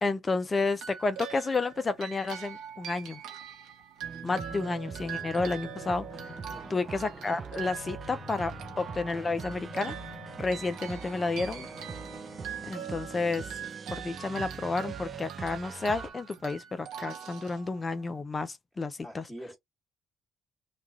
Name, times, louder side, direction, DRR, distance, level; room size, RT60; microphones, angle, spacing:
voice 1, 0.0-3.2 4.2-6.1 6.7-9.9 10.4-11.7 12.7-13.4 13.9-19.2, left 3 dB, 30° left, 0.5 m, -31 dB
sound 1, 0.7-18.2, right 9 dB, 90° right, 0.9 m, -43 dB
sound 2, 4.0-16.1, right 5 dB, 40° right, 0.5 m, -43 dB
sound 3, 4.3-12.9, left 5 dB, 60° left, 1.3 m, -50 dB
voice 2, 6.5-6.9 19.0-19.6, equal, ahead, 1.4 m, -45 dB
3.0 x 2.4 x 2.4 m
cardioid pair, 90°, 0 cm